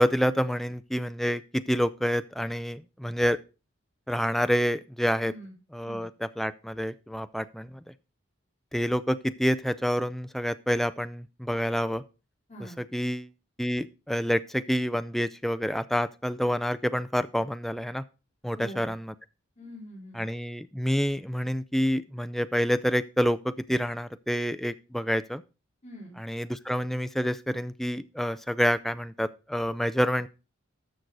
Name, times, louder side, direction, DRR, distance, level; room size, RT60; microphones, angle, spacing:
voice 1, 0.0-3.4 4.1-5.3 5.7-7.8 8.7-12.0 12.9-13.3 13.6-18.0 18.4-19.1 20.1-25.4 26.2-30.3, equal, ahead, 12 dB, 0.4 m, -28 dB
voice 2, 5.2-5.5 5.8-6.1 12.5-12.8 18.6-18.9 19.6-20.2 25.8-26.2, equal, 35° left, -2 dB, 3.2 m, -44 dB
13.0 x 6.2 x 4.0 m, 0.32 s
head